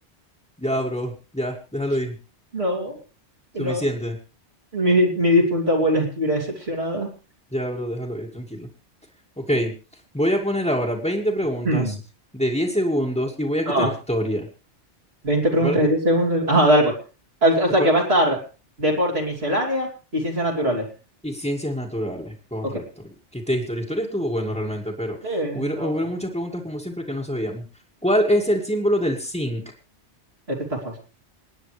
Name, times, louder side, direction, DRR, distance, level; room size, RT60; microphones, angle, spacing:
voice 1, 0.6-2.2 3.6-4.2 7.5-8.7 9.4-9.7 10.1-12.0 12.3-14.5 15.6-15.8 17.8-17.9 21.2-23.0 23.3-25.2 25.5-27.6 28.0-29.6, equal, 5° left, -4 dB, 1.9 m, -25 dB
voice 2, 2.5-3.0 3.5-3.8 4.7-7.1 11.6-11.9 13.7-13.9 15.2-17.0 17.4-18.4 18.8-20.9 22.6-22.8 25.2-25.9 30.5-31.0, equal, 60° right, -2 dB, 3.3 m, -21 dB
28.5 x 9.6 x 3.3 m, 0.34 s
omnidirectional pair, 1.2 m